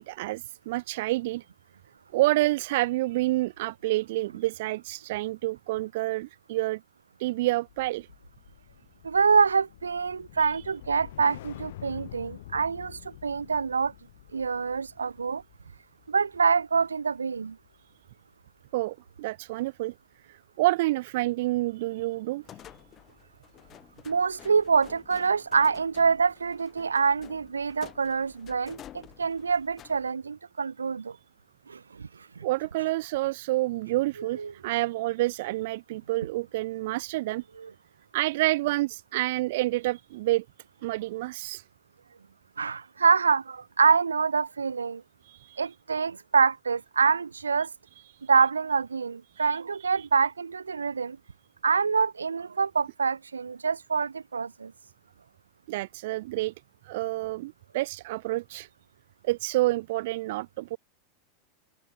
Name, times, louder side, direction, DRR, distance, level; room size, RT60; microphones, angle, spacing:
voice 1, 0.0-1.4 2.1-6.8 7.2-8.1 18.7-19.9 20.3-22.4 32.4-37.4 38.1-40.4 40.8-41.6 45.2-45.6 49.3-49.4 50.0-50.1 55.7-56.5 56.8-58.7 59.2-60.8, right 18 dB, 60° right, 1.5 m, -28 dB
sound 1, 7.7-18.1 18.4-18.7, left 14 dB, 65° left, 6.5 m, -48 dB
voice 2, 9.0-13.9 14.3-15.4 16.1-17.6 24.0-31.2 31.7-32.4 34.2-34.5 37.6-37.7 42.6-45.0 45.6-47.7 48.2-51.2 51.6-54.7, right 5 dB, 80° right, 1.5 m, -26 dB
sound 2, 22.4-30.1, left 11 dB, 35° left, 6.5 m, -51 dB
open air
figure-of-eight pair, 90°, 0 cm